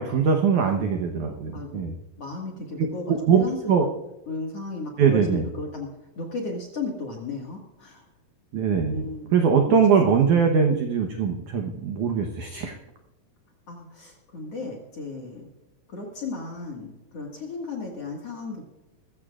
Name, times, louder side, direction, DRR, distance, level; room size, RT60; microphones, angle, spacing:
voice 1, 0.0-1.9 3.1-3.9 5.0-5.4 8.5-9.1 9.3-12.7, right 6 dB, 85° right, 3 dB, 1.7 m, -21 dB
voice 2, 1.5-3.9 4.3-5.9 6.2-8.1 8.9-9.7 10.3-10.8 13.7-15.5 15.9-18.6, left 3 dB, 50° left, 0 dB, 2.1 m, -35 dB
21.0 x 14.5 x 2.5 m, 1.0 s
omnidirectional pair, 5.2 m